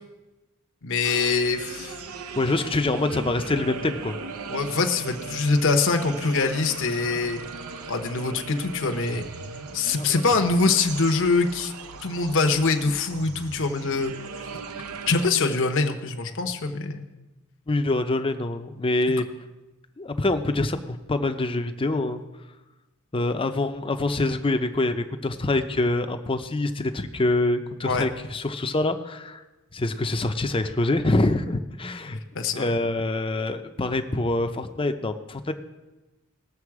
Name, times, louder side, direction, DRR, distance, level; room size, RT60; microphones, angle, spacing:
voice 1, 0.8-2.0 4.5-7.4 7.9-9.3 9.7-11.7 12.0-14.1 15.1-17.1 27.8-28.1 32.3-32.7, left 4 dB, 60° left, 5 dB, 0.9 m, -24 dB
sound 1, 1.0-15.3, right 4 dB, 85° right, 0.8 m, -38 dB
voice 2, 2.4-4.2 10.0-10.2 17.7-19.3 20.0-22.2 23.1-29.4 29.7-32.2 32.6-35.5, left 2 dB, 25° left, 7 dB, 0.6 m, -25 dB
19.0 x 7.0 x 4.8 m, 1.1 s
head